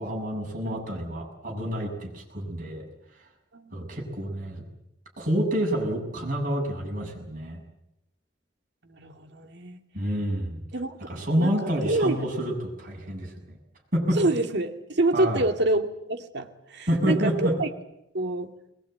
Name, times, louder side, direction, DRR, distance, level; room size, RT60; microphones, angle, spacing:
voice 1, 0.0-2.8 3.7-4.6 5.2-7.6 9.9-10.6 11.1-13.6 13.9-14.2 15.1-15.4 16.9-17.5, equal, 50° right, 0 dB, 7.3 m, -28 dB
voice 2, 0.6-1.0 3.5-3.9 8.8-9.8 10.7-12.3 14.2-17.7 18.1-18.5, right 2 dB, 65° right, 5 dB, 2.2 m, -27 dB
21.5 x 21.0 x 9.2 m, 0.83 s
head